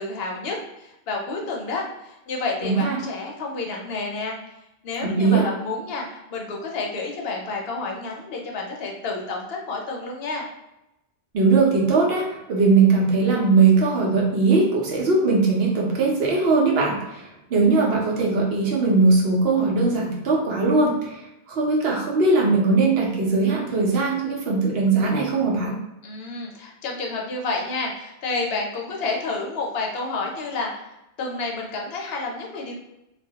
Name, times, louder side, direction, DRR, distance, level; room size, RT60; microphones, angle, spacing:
voice 1, 0.0-4.4 4.8-10.5 26.0-32.7, left 3 dB, 70° left, 0 dB, 0.8 m, -30 dB
voice 2, 2.6-3.0 5.0-5.5 11.3-25.8, right 3 dB, 70° right, -2 dB, 0.8 m, -20 dB
2.3 x 2.1 x 2.7 m, 0.90 s
omnidirectional pair, 1.1 m